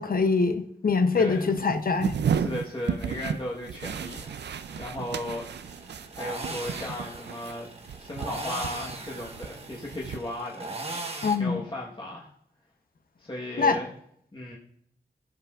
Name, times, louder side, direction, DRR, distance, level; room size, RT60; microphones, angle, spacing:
voice 1, 0.0-2.2 11.2-11.6 13.6-13.8, left 4 dB, 55° left, 8 dB, 0.7 m, -24 dB
voice 2, 1.1-1.5 2.3-5.5 6.1-7.7 8.0-11.0 11.4-12.3 13.2-13.9 14.3-14.6, left 1 dB, 25° left, -4 dB, 1.3 m, -36 dB
sound 1, 1.3-7.5 7.8-10.2, right 7 dB, 75° right, 0.4 m, -34 dB
sound 2, 3.8-11.4, right 2 dB, 35° right, 1.1 m, -40 dB
15.5 x 5.7 x 2.4 m, 0.69 s
wide cardioid pair, 75°, 18 cm